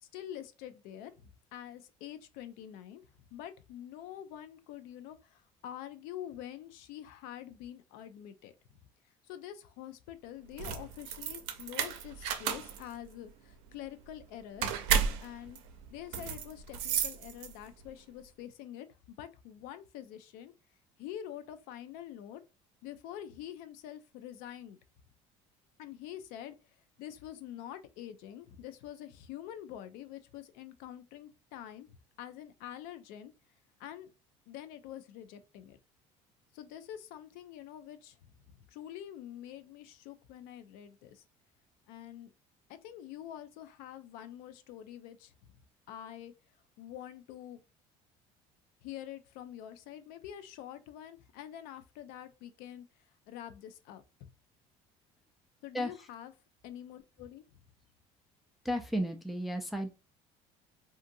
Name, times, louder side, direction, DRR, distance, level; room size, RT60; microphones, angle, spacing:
voice 1, 0.0-8.5 9.3-14.9 15.2-15.6 15.9-20.5 21.0-22.4 22.8-24.8 25.8-26.5 27.0-33.3 33.8-34.1 34.5-35.8 36.5-38.2 38.5-41.2 41.9-42.3 42.7-45.3 45.9-46.3 46.8-47.6 48.8-52.9 53.3-54.3 55.6-56.3 56.6-57.6, left 11 dB, 75° left, 0.4 m, -46 dB
sound 1, 10.5-17.8, right 8 dB, 80° right, 0.5 m, -34 dB
voice 2, 58.6-59.9, equal, ahead, 0.4 m, -33 dB
2.6 x 2.5 x 2.6 m
supercardioid pair, 95°, 15 cm